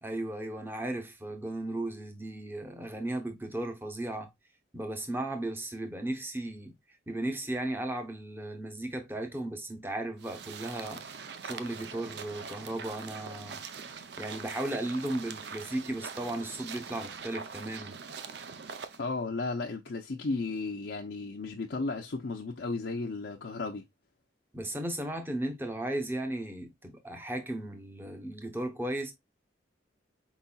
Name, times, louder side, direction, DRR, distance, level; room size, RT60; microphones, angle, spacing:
voice 1, 0.0-4.3 4.7-6.7 7.1-11.0 11.4-13.6 14.2-18.0 24.5-29.1, right 1 dB, 10° right, 0.8 m, -35 dB
sound 1, 10.2-19.0, right 5 dB, 60° right, 0.5 m, -43 dB
voice 2, 19.0-23.8, left 3 dB, 65° left, 0.6 m, -34 dB
4.6 x 4.0 x 2.3 m
head